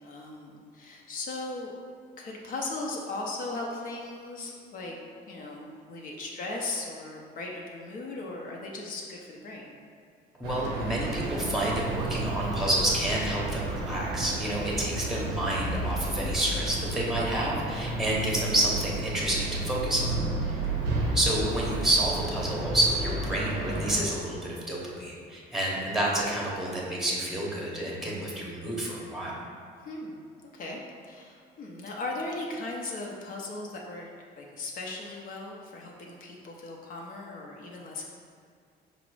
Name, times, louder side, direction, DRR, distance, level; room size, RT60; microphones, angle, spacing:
voice 1, 0.0-1.7 2.2-5.0 5.3-9.8 12.6-12.7 14.6-14.9 29.8-34.1 34.4-38.0, left 2 dB, 55° left, -1 dB, 0.7 m, -38 dB
voice 2, 10.4-20.7 21.1-29.4, right 1 dB, ahead, -4 dB, 0.9 m, -29 dB
sound 1, 10.4-24.0, right 2 dB, 85° right, 0.7 m, -32 dB
4.9 x 2.0 x 4.7 m, 2.3 s
cardioid pair, 110°, 17 cm